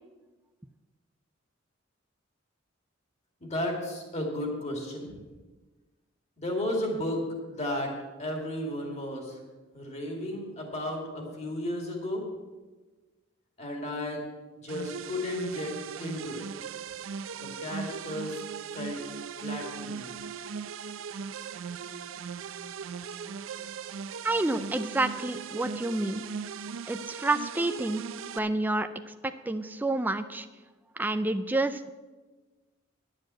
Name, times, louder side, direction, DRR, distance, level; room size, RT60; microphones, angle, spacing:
voice 1, 3.4-5.1 6.4-7.9 8.2-9.4 9.7-12.2 13.6-14.2 14.6-15.7 16.0-16.7 17.3-18.4 18.7-19.0 19.4-20.1, left 1 dB, 35° left, 1 dB, 2.5 m, -33 dB
sound 1, 14.7-28.4, right 6 dB, 90° right, 0.5 m, -39 dB
voice 2, 24.2-26.2 26.9-28.0 28.3-30.5 31.0-31.9, right 2 dB, 10° right, 9 dB, 0.4 m, -29 dB
11.0 x 7.6 x 7.6 m, 1.3 s
head